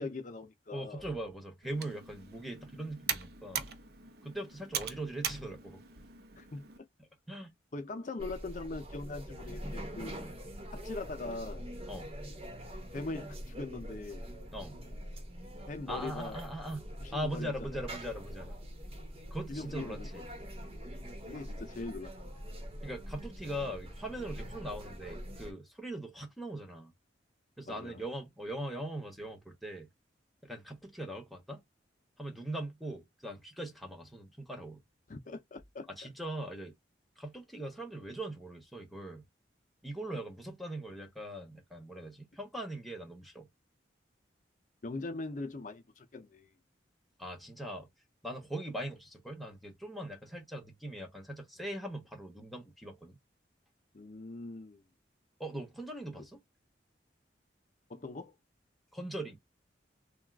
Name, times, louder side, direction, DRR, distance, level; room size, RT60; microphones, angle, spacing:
voice 1, 0.0-1.0 3.5-3.7 6.4-6.7 7.7-10.2 10.8-11.6 12.9-14.3 15.7-16.4 17.0-17.7 19.5-20.2 21.3-22.3 27.7-28.0 35.1-35.9 44.8-46.5 53.9-54.8 56.1-56.2 57.9-58.3, left 3 dB, 45° left, 0.5 m, -41 dB
voice 2, 0.7-3.6 4.2-5.8 7.0-7.5 10.2-10.4 11.9-12.1 14.5-14.8 15.9-16.8 17.1-18.5 19.3-20.3 22.8-26.9 27.6-29.9 30.4-31.6 32.2-34.8 35.9-36.7 37.2-39.2 39.8-43.5 47.2-47.9 48.2-53.2 55.4-56.4 58.9-59.4, right 1 dB, ahead, 0.8 m, -41 dB
Computer keyboard, 1.6-6.8, right 8 dB, 55° right, 0.6 m, -41 dB
sound 1, 8.2-25.5, equal, 30° right, 1.1 m, -44 dB
3.5 x 2.3 x 2.3 m
head